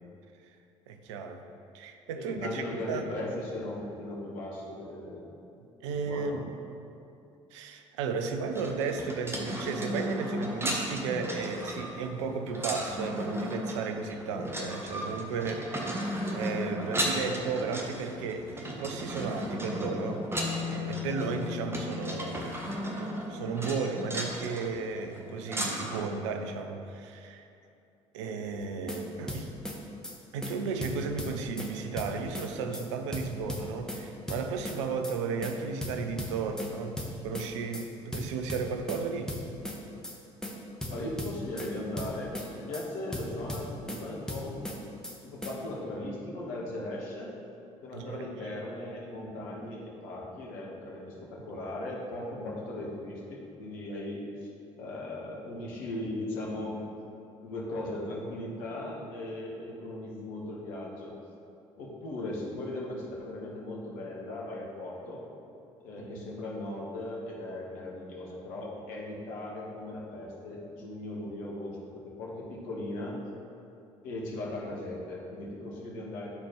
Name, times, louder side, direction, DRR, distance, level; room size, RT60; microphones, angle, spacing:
voice 1, 0.9-1.4 1.7-3.0 5.8-6.5 7.5-15.7 16.3-20.3 20.5-27.5 28.1-29.5 30.3-39.4 47.9-48.3 66.0-66.3, right 5 dB, 70° right, 6 dB, 0.5 m, -34 dB
voice 2, 2.1-5.3 5.9-6.5 15.7-16.1 40.9-44.7 45.2-47.3 47.8-54.5 54.8-56.8 57.4-61.1 61.8-65.2 65.8-73.2 74.0-76.3, left 1 dB, 60° left, -3 dB, 1.4 m, -38 dB
sound 1, 8.5-26.0, right 1 dB, 15° right, 1.2 m, -35 dB
Bass guitar, 20.4-24.3 25.4-25.5, left 12 dB, 35° left, 0.4 m, -39 dB
sound 2, 28.6-29.0 29.3-29.8 30.0-30.2 30.4-30.5 30.8-31.7 32.0-32.5 32.7-32.8 33.1-34.0 34.3-34.8 35.0-35.2 35.4-35.5 35.8-36.7 37.0-37.5 37.7-37.8 38.1-39.0 39.3-39.8 40.0-40.2 40.4-40.5 40.8-41.7 42.0-42.5 42.7-42.8 43.1-44.0 44.3-44.8 45.0-45.2 45.4-45.5, left 1 dB, 5° left, 1.1 m, -36 dB
12.0 x 4.3 x 3.1 m, 2.7 s
figure-of-eight pair, 50°, 16 cm